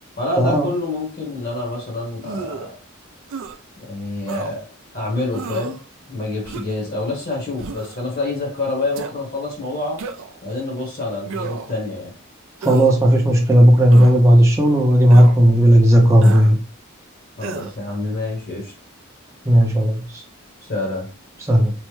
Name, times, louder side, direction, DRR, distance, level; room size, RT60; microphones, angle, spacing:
voice 1, 0.2-2.7 3.8-4.6 4.9-5.8 6.1-10.0 10.4-12.1 17.4-18.7 20.7-21.1, left 2 dB, 45° left, -2 dB, 1.0 m, -27 dB
sound 1, 2.2-2.7 3.3-3.6 4.3-4.5 5.3-5.8 6.4-6.8 7.6-8.0 8.9-9.1 10.0-10.4 11.3-11.8 12.6-13.0 13.9-14.2 15.1-15.4 16.2-16.5 17.4-17.7, right 5 dB, 65° right, 0.3 m, -31 dB
voice 2, 12.6-16.6 19.5-20.2 21.5-21.7, equal, 15° right, 0 dB, 0.5 m, -13 dB
3.1 x 2.1 x 3.1 m, 0.36 s
head